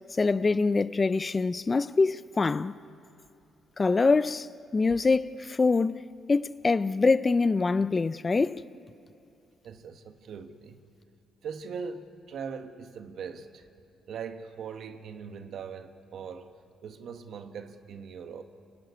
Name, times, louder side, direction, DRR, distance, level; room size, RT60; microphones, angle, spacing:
voice 1, 0.1-2.8 3.8-6.0 6.3-8.6, left 4 dB, 30° left, 0.5 m, -24 dB
voice 2, 9.6-10.8 11.4-13.7 14.1-16.5 16.8-18.4, right 6 dB, 70° right, 1.6 m, -40 dB
29.5 x 17.5 x 9.8 m
cardioid pair, 90°, 0 cm